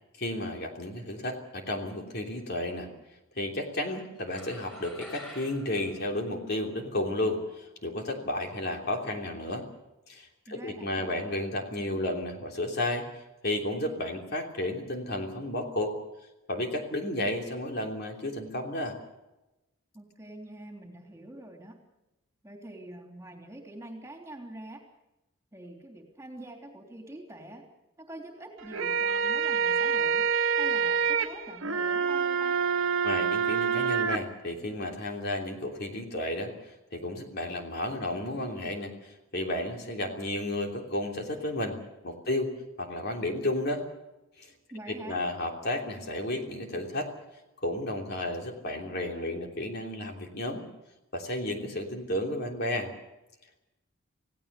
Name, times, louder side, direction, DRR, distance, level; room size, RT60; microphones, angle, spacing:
voice 1, 0.2-2.9 3.3-9.6 10.1-15.9 16.5-19.0 33.0-41.8 42.0-42.5 42.8-43.8 44.4-44.5 44.9-47.1 47.6-50.6 51.1-52.9, left 1 dB, 50° left, 2 dB, 3.3 m, -32 dB
sound 1, 4.3-6.9, equal, 10° left, 6.8 m, -48 dB
voice 2, 10.5-11.2 19.9-21.8 22.4-24.9 25.5-27.7 28.0-30.3 30.6-32.6 44.7-45.3, right 1 dB, 15° right, 2 dB, 3.3 m, -45 dB
sound 2, 28.6-34.2, right 6 dB, 65° right, 1.6 m, -27 dB
28.0 x 17.0 x 6.9 m, 0.97 s
head